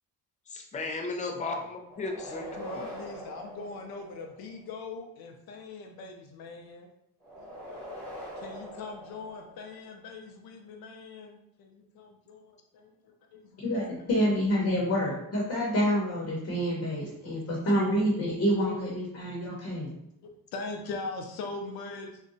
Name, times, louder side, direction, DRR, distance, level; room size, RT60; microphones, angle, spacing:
voice 1, 0.5-2.8, left 3 dB, 20° left, 2 dB, 0.3 m, -35 dB
sound 1, 1.8-4.6 7.2-9.9, equal, 5° left, 0.9 m, -43 dB
voice 2, 2.2-6.9 7.4-8.0 8.4-13.9 14.3-14.5 16.9-18.3 18.7-19.0 20.2-22.2, left 3 dB, 80° left, 2 dB, 0.5 m, -42 dB
voice 3, 13.6-19.9, equal, 45° left, -4 dB, 0.8 m, -28 dB
3.7 x 2.1 x 2.6 m, 0.81 s
cardioid pair, 155°, 36 cm